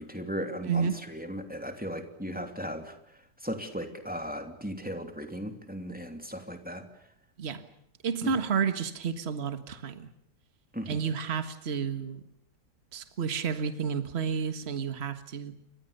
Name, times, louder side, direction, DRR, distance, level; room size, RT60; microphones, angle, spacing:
voice 1, 0.0-3.0 3.4-6.8 8.2-8.3 10.7-11.0, equal, 5° right, 2.9 m, -37 dB
voice 2, 0.6-1.0 7.4-7.6 8.0-10.1 10.9-12.2 12.9-15.5, right 6 dB, 40° right, 1.8 m, -31 dB
29.5 x 24.0 x 6.8 m
omnidirectional pair, 1.8 m